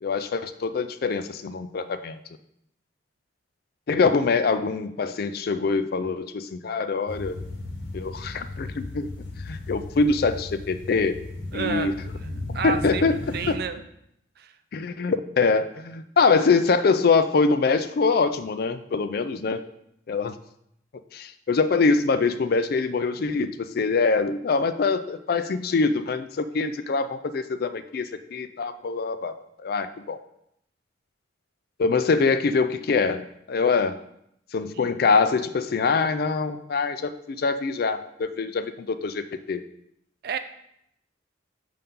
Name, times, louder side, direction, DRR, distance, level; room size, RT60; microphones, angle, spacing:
voice 1, 0.0-2.2 3.9-7.4 7.9-9.1 9.5-11.2 11.5-11.9 12.6-13.2 13.5-13.6 14.7-19.6 20.1-20.4 21.1-30.2 31.8-34.0 34.5-39.6, left 4 dB, 55° left, 11 dB, 0.4 m, -24 dB
sound 1, 7.1-13.5, left 2 dB, 75° left, 1.2 m, -36 dB
voice 2, 11.5-11.9 12.2-12.3 12.5-13.1 13.3-13.8 14.4-14.5 34.8-35.0 40.2-40.4, right 6 dB, 55° right, 10 dB, 0.4 m, -30 dB
5.6 x 5.4 x 3.7 m, 0.75 s
head